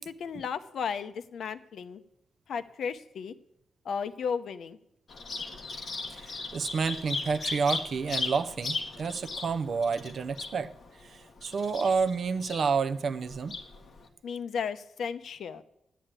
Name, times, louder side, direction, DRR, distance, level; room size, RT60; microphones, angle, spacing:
voice 1, 0.0-2.0 2.5-3.3 3.8-4.8 14.2-15.6, left 6 dB, 60° left, 0.7 m, -34 dB
Bird vocalization bird call bird song, 5.1-14.1, left 3 dB, 40° left, 1.7 m, -38 dB
voice 2, 6.1-10.7 11.0-13.6, right 5 dB, 45° right, 0.5 m, -30 dB
12.5 x 10.0 x 8.9 m
wide cardioid pair, 180°, 0 cm